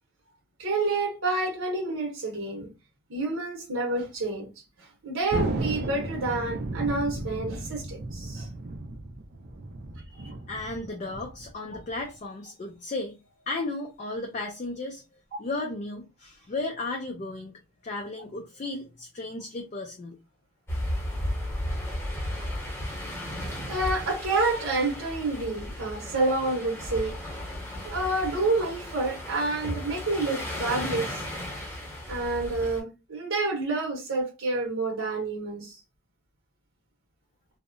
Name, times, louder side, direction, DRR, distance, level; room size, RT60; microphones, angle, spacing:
voice 1, 0.6-2.7 3.1-4.5 4.8-8.5 23.7-27.1 27.8-31.3 32.1-35.8, right 2 dB, 65° right, 0.8 m, -28 dB
Thunder, 5.3-12.1, right 2 dB, 45° right, 0.4 m, -34 dB
voice 2, 10.1-13.2 13.5-15.0 15.4-20.2, left 2 dB, 35° left, 0.3 m, -35 dB
sound 1, 20.7-32.8, left 1 dB, 10° left, 0.8 m, -35 dB
2.7 x 2.1 x 2.5 m
head